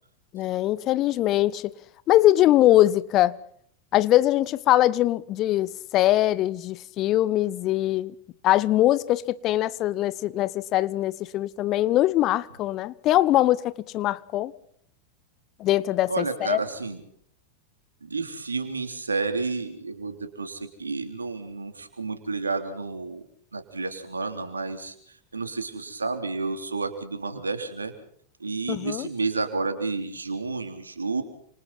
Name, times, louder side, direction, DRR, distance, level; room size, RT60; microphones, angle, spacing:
voice 1, 0.3-1.7 2.1-3.4 3.9-8.1 8.4-14.5 15.6-16.6 28.7-29.1, left 14 dB, 35° left, 1.1 m, -22 dB
voice 2, 16.1-17.0 18.0-23.2 23.5-24.9 25.3-27.9 28.4-31.2, right 3 dB, 75° right, 3.5 m, -30 dB
30.0 x 27.0 x 4.3 m
figure-of-eight pair, 90°, 0 cm